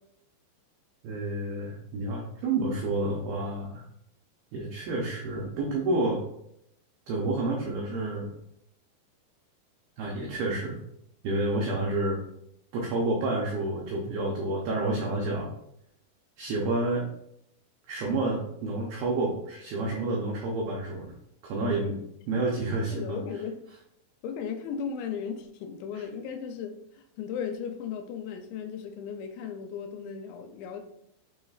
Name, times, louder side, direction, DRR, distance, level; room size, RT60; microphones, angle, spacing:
voice 1, 1.0-3.8 4.5-6.2 7.1-8.3 10.0-10.8 11.2-12.2 12.7-15.5 16.4-17.1 17.9-21.1 21.4-22.0 22.3-23.2 25.9-26.0, right 2 dB, 85° right, -2 dB, 2.0 m, -29 dB
voice 2, 22.9-23.6 24.2-30.8, left 7 dB, 85° left, 6 dB, 2.7 m, -36 dB
6.8 x 3.1 x 2.3 m, 0.76 s
omnidirectional pair, 5.1 m